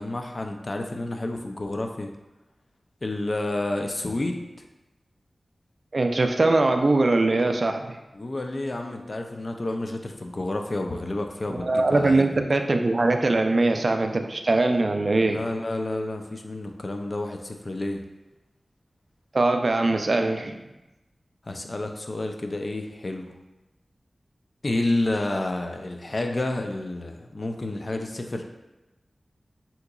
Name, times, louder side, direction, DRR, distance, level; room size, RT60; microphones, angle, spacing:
voice 1, 0.0-2.1 3.0-4.5 8.1-12.4 15.2-18.0 21.5-23.3 24.6-28.4, left 2 dB, 50° left, 4 dB, 0.4 m, -30 dB
voice 2, 5.9-8.0 11.5-15.4 19.3-20.5, right 2 dB, 60° right, 5 dB, 0.3 m, -22 dB
3.6 x 2.9 x 2.3 m, 1.0 s
cardioid pair, 45°, 0 cm